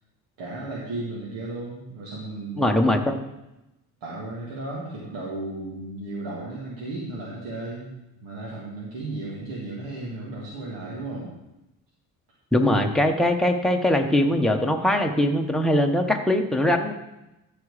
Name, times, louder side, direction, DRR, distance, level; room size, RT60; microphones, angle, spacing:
voice 1, 0.4-2.8 4.0-7.9 8.2-11.3, right 2 dB, 75° right, -5 dB, 2.6 m, -34 dB
voice 2, 2.6-3.2 12.5-16.9, left 1 dB, ahead, 2 dB, 1.1 m, -21 dB
14.0 x 5.0 x 5.0 m, 0.93 s
cardioid pair, 110°, 36 cm